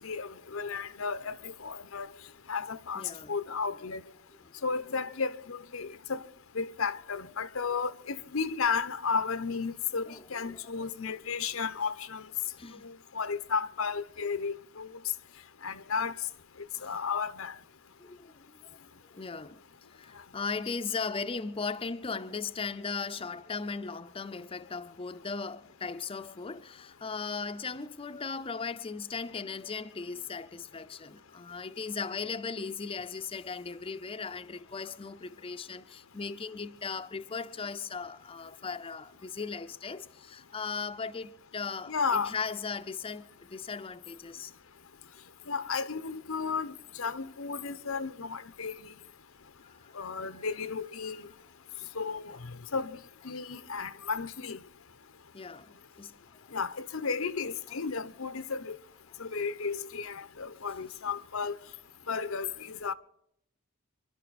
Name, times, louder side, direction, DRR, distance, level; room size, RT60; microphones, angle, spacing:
voice 1, 0.0-2.1 2.5-3.0 3.3-4.0 4.6-6.2 6.5-12.2 12.8-14.9 15.6-16.1 16.8-17.5 41.9-42.3 45.5-48.7 49.9-51.3 52.0-53.0 53.2-54.6 56.5-58.8 59.2-61.5 62.1-62.9, left 5 dB, 85° left, 0.9 m, -33 dB
voice 2, 2.9-3.3 4.4-4.5 10.1-11.1 12.6-12.8 16.7-17.1 18.0-19.6 19.9-44.5 49.6-50.4 55.3-56.5 59.1-59.2, left 5 dB, 25° left, 0.6 m, -38 dB
26.0 x 12.0 x 4.1 m
head